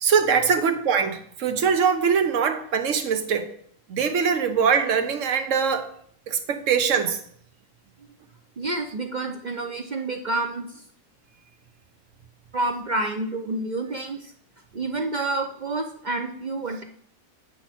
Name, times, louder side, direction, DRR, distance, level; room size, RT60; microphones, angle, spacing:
voice 1, 0.0-3.5 3.9-5.9 6.3-7.2, right 6 dB, 70° right, 8 dB, 1.2 m, -22 dB
voice 2, 8.6-10.8 12.5-14.3 14.7-16.8, right 2 dB, 45° right, 4 dB, 0.6 m, -29 dB
9.0 x 5.8 x 4.4 m, 0.63 s
omnidirectional pair, 1.4 m